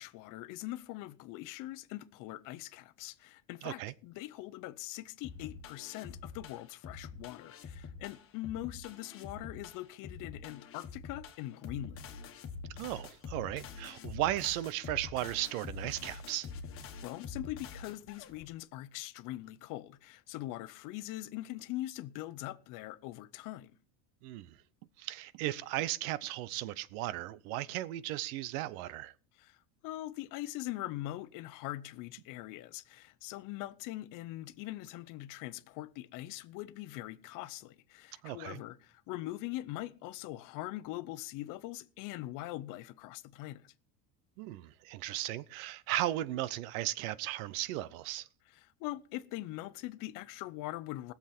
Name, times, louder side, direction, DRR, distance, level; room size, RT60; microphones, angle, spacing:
voice 1, 0.0-12.1 17.0-23.7 29.4-29.6 29.8-43.7 48.6-51.1, left 16 dB, 50° left, 0.7 m, -42 dB
voice 2, 3.6-3.9 12.7-16.5 24.2-24.6 25.0-29.1 38.2-38.6 44.4-48.3, right 15 dB, 90° right, 0.8 m, -36 dB
sound 1, 5.2-18.4, left 5 dB, 30° left, 1.6 m, -46 dB
20.0 x 7.3 x 4.3 m
cardioid pair, 160°, 41 cm